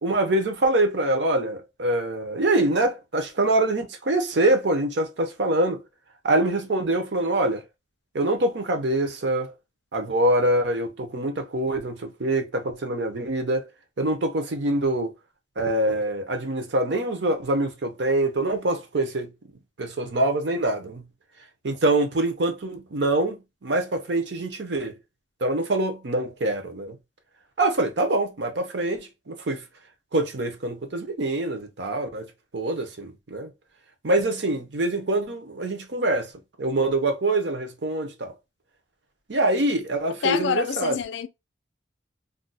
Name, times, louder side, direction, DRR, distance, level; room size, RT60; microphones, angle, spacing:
voice 1, 0.0-5.8 6.2-7.6 8.1-9.5 9.9-13.7 14.0-15.1 15.6-19.3 19.8-21.1 21.6-23.4 23.6-24.9 25.4-27.0 27.6-29.6 30.1-32.3 32.5-33.5 34.0-36.3 36.6-38.3 39.3-40.9, right 1 dB, 75° right, 0.7 m, -24 dB
voice 2, 40.2-41.3, left 7 dB, 85° left, 0.4 m, -26 dB
2.5 x 2.2 x 4.0 m
head